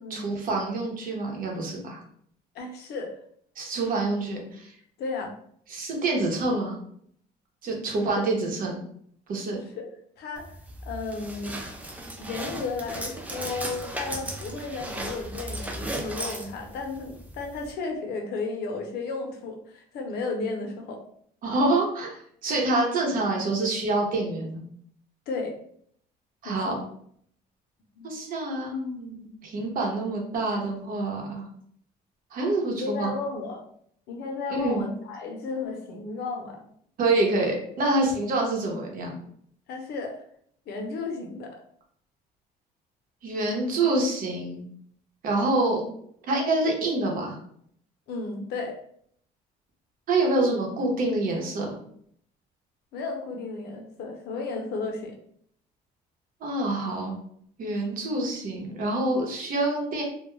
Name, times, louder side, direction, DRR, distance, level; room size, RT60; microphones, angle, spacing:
voice 1, 0.1-2.0 3.6-4.7 5.7-6.7 7.6-8.8 9.3-9.6 21.4-24.6 26.4-26.7 28.0-31.5 32.3-33.1 34.5-34.8 37.0-39.2 43.2-44.6 45.2-45.8 46.3-47.4 50.1-51.7 56.4-57.2 57.6-60.0, right 2 dB, 55° right, 0 dB, 0.9 m, -26 dB
voice 2, 2.5-3.1 5.0-5.3 8.0-8.2 9.6-9.9 10.2-10.5 10.9-11.6 12.2-21.0 25.3-25.6 26.4-26.8 28.0-28.1 32.6-33.6 34.1-36.6 39.7-40.2 40.7-41.6 48.1-48.8 52.9-55.1, left 3 dB, 75° left, 3 dB, 0.7 m, -33 dB
sound 1, 10.4-17.7, right 1 dB, 10° right, 0.4 m, -36 dB
2.2 x 2.2 x 3.0 m, 0.65 s
cardioid pair, 110°, 17 cm